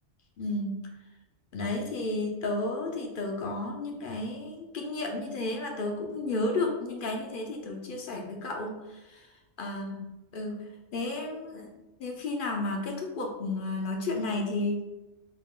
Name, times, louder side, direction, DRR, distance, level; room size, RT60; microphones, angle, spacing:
voice 1, 0.4-0.7 1.5-9.3 9.6-10.1 10.3-11.7 12.0-14.8, left 2 dB, 60° left, 2 dB, 0.6 m, -32 dB
4.2 x 2.3 x 3.6 m, 1.1 s
omnidirectional pair, 1.3 m